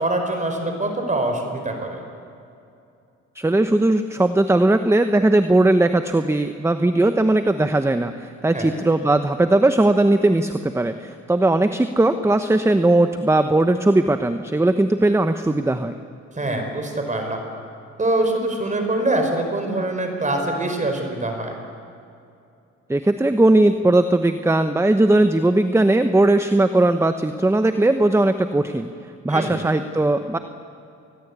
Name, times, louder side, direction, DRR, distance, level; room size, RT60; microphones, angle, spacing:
voice 1, 0.0-2.0 8.5-8.7 16.3-17.4 18.0-21.5 29.3-29.6, right 2 dB, 25° right, 4 dB, 4.9 m, -24 dB
voice 2, 3.3-15.9 22.9-28.9 29.2-30.4, right 2 dB, 10° right, 9 dB, 1.0 m, -18 dB
27.5 x 20.0 x 8.4 m, 2.5 s
cardioid pair, 90°, 30 cm